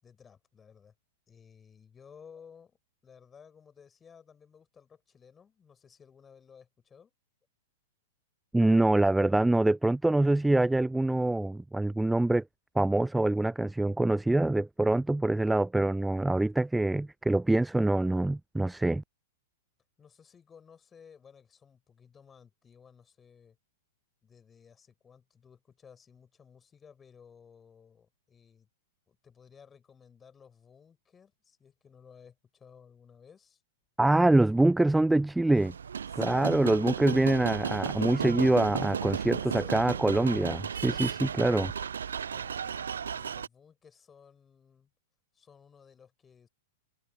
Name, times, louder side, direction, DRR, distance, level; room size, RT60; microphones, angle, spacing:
voice 1, 0.0-0.9 1.3-2.8 3.0-7.1 20.0-23.6 24.2-28.7 29.1-33.6 36.1-36.6 39.3-40.3 42.2-44.9 45.3-46.5, left 7 dB, 15° left, 6.6 m, -56 dB
voice 2, 8.5-12.4 12.8-19.0 34.0-35.7 36.2-41.7, right 2 dB, 5° right, 0.3 m, -25 dB
sound 1, 35.5-43.5, right 7 dB, 65° right, 0.6 m, -34 dB
figure-of-eight pair, 100°, 0 cm